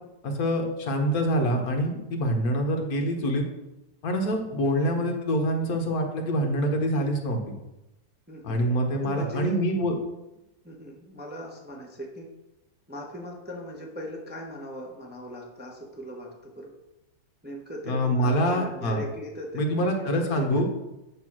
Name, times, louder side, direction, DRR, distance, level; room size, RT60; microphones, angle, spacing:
voice 1, 0.2-3.4 4.0-7.5 8.4-9.9 17.9-19.0 19.5-20.6, equal, 55° left, 3 dB, 1.4 m, -25 dB
voice 2, 8.3-8.6 9.0-9.7 10.6-12.3 12.9-16.7 17.4-20.6, equal, 10° right, -1 dB, 0.5 m, -39 dB
8.2 x 3.5 x 6.0 m, 0.95 s
omnidirectional pair, 2.1 m